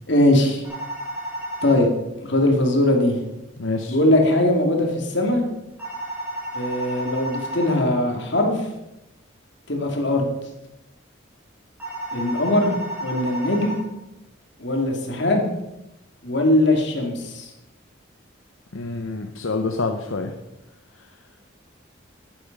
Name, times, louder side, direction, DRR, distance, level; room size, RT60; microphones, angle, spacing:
voice 1, 0.1-0.6 1.6-1.9 2.2-3.2 3.9-5.4 6.5-8.7 9.7-10.3 12.1-13.8 14.6-15.5 16.2-17.5, left 1 dB, 60° left, 2 dB, 2.4 m, -20 dB
sound 1, 0.6-1.8 5.8-7.8 11.8-13.8, right 1 dB, 10° right, 4.4 m, -32 dB
voice 2, 3.6-4.0 18.7-20.3, left 3 dB, 80° left, 5 dB, 0.8 m, -27 dB
10.5 x 9.9 x 5.3 m, 0.94 s
head